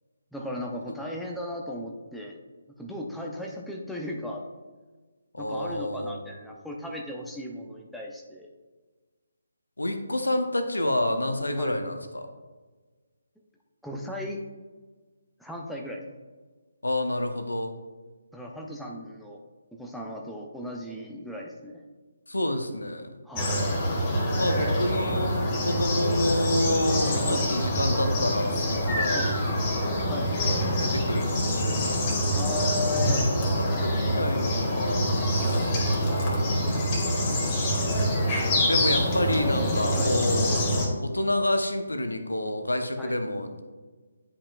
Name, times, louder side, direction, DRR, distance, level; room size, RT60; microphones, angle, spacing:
voice 1, 0.3-2.4 2.8-4.5 5.4-8.5 11.6-11.7 13.8-14.4 15.4-16.0 18.3-19.4 19.7-21.8 23.2-23.6 27.2-27.5 29.1-29.3 30.1-30.3 32.4-33.2 35.3-35.5 39.9-40.1 43.0-43.1, left 1 dB, ahead, -2 dB, 0.6 m, -36 dB
voice 2, 5.3-6.3 9.8-12.3 16.8-17.7 22.3-23.1 24.4-29.4 30.8-32.7 33.3-35.4 38.0-40.5 41.0-43.6, left 1 dB, 75° left, 7 dB, 0.8 m, -29 dB
sound 1, 23.4-40.9, equal, 20° left, 1.5 m, -25 dB
10.0 x 5.2 x 2.4 m, 1.3 s
figure-of-eight pair, 145°, 0 cm